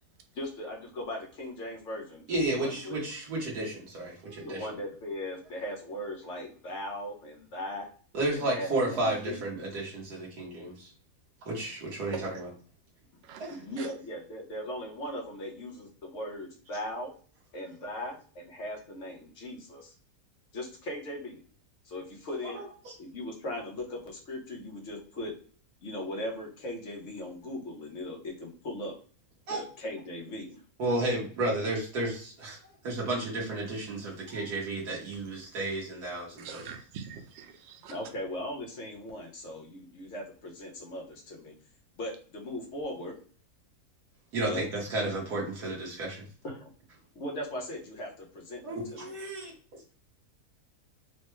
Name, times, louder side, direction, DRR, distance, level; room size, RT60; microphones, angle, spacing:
voice 1, 0.3-3.0 4.4-7.9 8.3-9.6 13.5-17.1 17.5-19.9 20.5-21.4 21.8-22.6 23.0-25.3 25.8-28.9 29.5-30.6 37.9-41.5 41.9-43.1 44.5-44.6 46.4-46.7 47.1-49.2, left 1 dB, 55° left, 0 dB, 1.2 m, -38 dB
voice 2, 2.3-4.7 8.1-10.9 11.4-12.5 13.4-13.5 22.5-22.9 29.5-29.6 30.8-36.7 44.3-46.2 48.6-49.5, right 2 dB, 85° right, -4 dB, 1.7 m, -32 dB
voice 3, 13.3-13.9 36.4-37.9, right 7 dB, 65° right, 6 dB, 0.7 m, -45 dB
4.3 x 2.2 x 3.1 m, 0.43 s
omnidirectional pair, 1.6 m